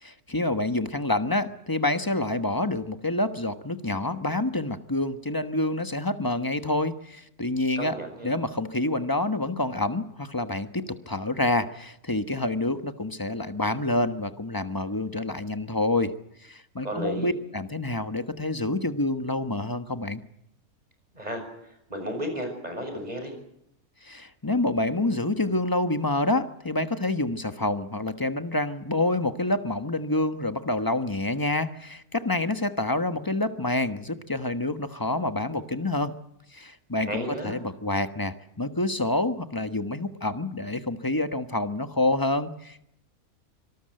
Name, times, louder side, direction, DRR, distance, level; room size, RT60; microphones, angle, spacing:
voice 1, 0.0-8.0 8.2-16.1 16.4-20.2 24.0-36.1 36.5-42.8, left 2 dB, 15° left, 10 dB, 1.1 m, -27 dB
voice 2, 7.8-8.3 16.8-17.3 21.1-21.4 21.9-23.3 37.0-37.6, equal, 25° right, 5 dB, 6.5 m, -33 dB
25.5 x 19.5 x 7.8 m, 0.76 s
omnidirectional pair, 1.5 m